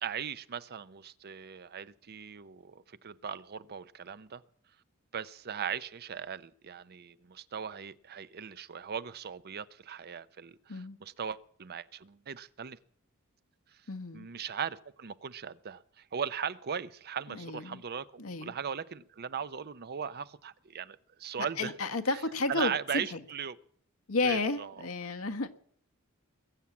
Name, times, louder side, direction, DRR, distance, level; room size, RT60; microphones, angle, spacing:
voice 1, 0.0-4.4 5.1-12.8 13.7-13.8 14.1-21.7 22.1-22.2 22.5-23.6 24.2-24.8, right 7 dB, 50° right, 0.6 m, -38 dB
voice 2, 13.9-14.3 17.3-17.8 18.2-18.5 21.6-23.2 24.1-25.5, left 3 dB, 75° left, 1.4 m, -32 dB
21.5 x 7.3 x 8.5 m
head